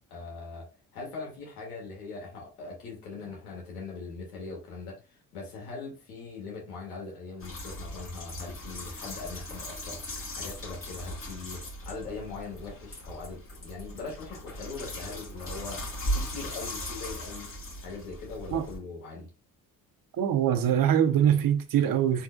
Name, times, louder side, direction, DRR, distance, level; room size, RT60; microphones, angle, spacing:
voice 1, 0.1-10.0 10.3-17.5 17.8-19.3, left 4 dB, 85° left, 1.9 m, -41 dB
sound 1, 7.4-18.8, equal, 30° left, 1.9 m, -38 dB
voice 2, 20.2-22.2, right 9 dB, 50° right, 0.9 m, -23 dB
4.6 x 3.7 x 2.4 m
hypercardioid pair, 50°, 44 cm